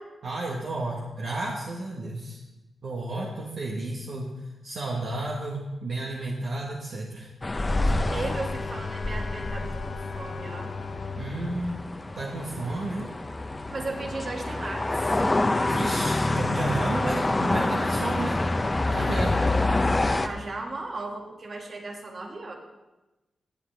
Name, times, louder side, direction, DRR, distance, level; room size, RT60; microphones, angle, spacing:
voice 1, 0.2-2.4 2.8-4.3 4.6-7.3 11.1-11.8 12.1-13.1 15.6-18.4 18.9-19.4, right 2 dB, 75° right, -3 dB, 1.5 m, -32 dB
sound 1, 7.4-20.3, left 2 dB, 30° left, 0.8 m, -27 dB
Bowed string instrument, 7.5-12.8, left 5 dB, 70° left, 0.8 m, -38 dB
voice 2, 7.9-10.7 13.7-15.1 18.9-19.6 20.1-22.5, right 3 dB, 60° right, 1 dB, 2.1 m, -36 dB
17.0 x 8.0 x 3.5 m, 1.1 s
cardioid pair, 50°, 0 cm